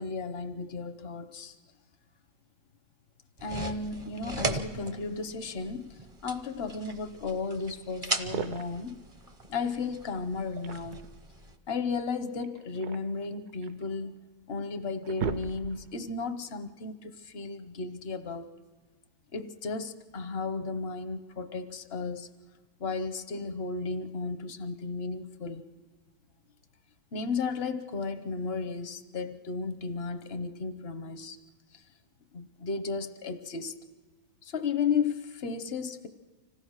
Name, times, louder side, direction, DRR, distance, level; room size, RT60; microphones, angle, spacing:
voice 1, 0.0-1.6 3.4-9.0 9.5-11.0 11.7-14.2 14.5-18.6 19.3-22.3 22.8-25.6 27.1-31.4 31.7-31.8 32.3-33.7 34.4-36.1, left 4 dB, 50° left, 10 dB, 0.7 m, -34 dB
sound 1, 3.4-11.5, right 2 dB, 30° right, 0.6 m, -38 dB
sound 2, 8.1-8.9 10.3-11.2 12.4-13.8 14.4-14.5 14.8-16.0, right 6 dB, 60° right, 1.2 m, -37 dB
25.5 x 16.0 x 6.4 m, 1.4 s
omnidirectional pair, 2.1 m